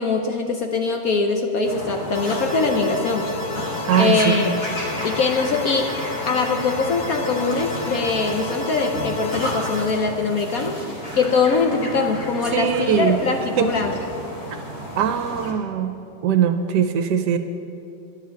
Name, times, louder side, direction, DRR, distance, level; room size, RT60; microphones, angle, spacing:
voice 1, 0.0-3.3 4.0-4.6 5.0-6.0 6.3-10.7 11.1-13.9, left 4 dB, 60° left, 4 dB, 1.0 m, -22 dB
sound 1, 1.6-15.5, equal, 30° left, 2.3 m, -32 dB
sound 2, 2.1-9.9, left 3 dB, 45° left, 0.5 m, -32 dB
voice 2, 3.9-4.5 12.5-13.2 13.6-13.7 15.0-15.9 16.2-17.4, right 8 dB, 70° right, 8 dB, 1.1 m, -20 dB
11.0 x 6.7 x 9.3 m, 2.8 s
omnidirectional pair, 2.1 m